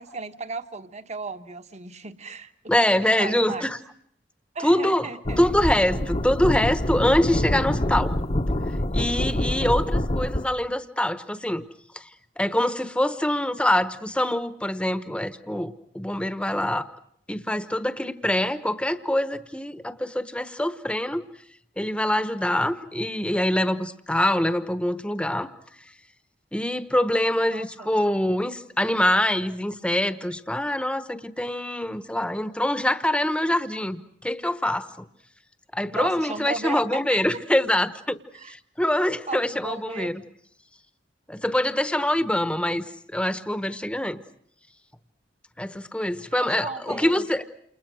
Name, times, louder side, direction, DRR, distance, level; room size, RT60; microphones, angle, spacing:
voice 1, 0.0-3.7 4.5-5.4 27.5-27.9 35.9-36.8 37.1-37.4 38.3-38.5 39.3-40.1 46.3-47.3, right 3 dB, 40° right, 10 dB, 1.3 m, -36 dB
voice 2, 2.7-3.8 4.6-5.1 5.4-8.2 8.9-11.7 11.9-12.0 12.4-16.9 17.3-21.2 21.8-25.5 26.5-35.0 35.7-38.2 38.5-40.2 41.3-42.8 43.1-44.2 45.6-47.4, left 1 dB, 5° left, 12 dB, 1.1 m, -24 dB
sound 1, 5.3-10.5, left 1 dB, 35° left, 1.1 m, -26 dB
29.0 x 29.0 x 6.3 m, 0.67 s
head